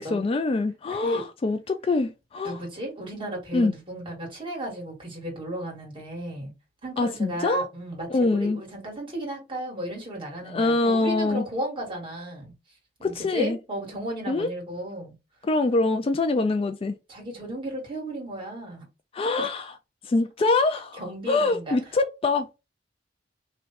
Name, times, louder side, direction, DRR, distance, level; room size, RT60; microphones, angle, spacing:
voice 1, 0.0-2.6 3.5-3.7 7.0-7.7 8.1-8.6 10.5-11.4 13.0-13.6 14.3-14.5 15.4-17.0 19.1-19.7 20.0-21.0 21.3-22.7, left 3 dB, 30° left, 0.3 m, -24 dB
voice 2, 0.9-1.2 2.4-6.5 6.8-12.5 13.0-15.1 17.1-18.9 19.4-19.5 21.0-21.8, right 1 dB, 30° right, 1.9 m, -34 dB
3.1 x 2.6 x 4.2 m
head